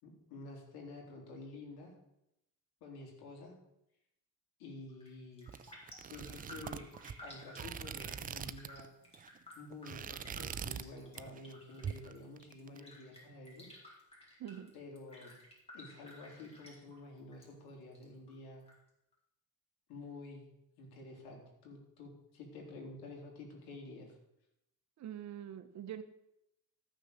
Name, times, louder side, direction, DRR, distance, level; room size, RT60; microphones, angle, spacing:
voice 1, 0.0-1.9 2.8-3.5 4.6-5.5 6.0-6.9 7.2-8.9 9.6-13.9 14.7-15.3 15.7-18.6 19.9-20.5 20.8-24.2, left 2 dB, 80° left, 1 dB, 3.7 m, -50 dB
Raindrop, 4.9-5.1 5.4-17.5 17.7-18.7 19.1-19.2, left 1 dB, 15° left, 4.0 m, -55 dB
sound 1, 5.5-8.9 9.1-9.4 9.7-10.9 11.2-11.5 11.8-12.8, right 8 dB, 25° right, 0.4 m, -43 dB
voice 2, 14.4-14.7 25.0-26.0, right 10 dB, 45° right, 9 dB, 1.1 m, -44 dB
13.5 x 6.5 x 6.6 m, 0.83 s
cardioid pair, 130°, 37 cm